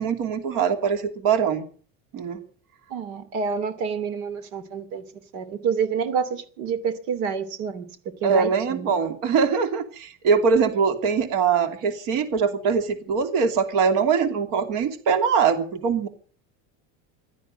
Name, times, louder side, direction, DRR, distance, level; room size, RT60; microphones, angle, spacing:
voice 1, 0.0-1.7 2.1-2.4 8.2-16.1, right 6 dB, 55° right, 2.9 m, -22 dB
voice 2, 2.9-5.0 5.3-7.8 8.2-8.9, right 6 dB, 85° right, 2.9 m, -28 dB
16.5 x 13.0 x 6.7 m
cardioid pair, 150°, 37 cm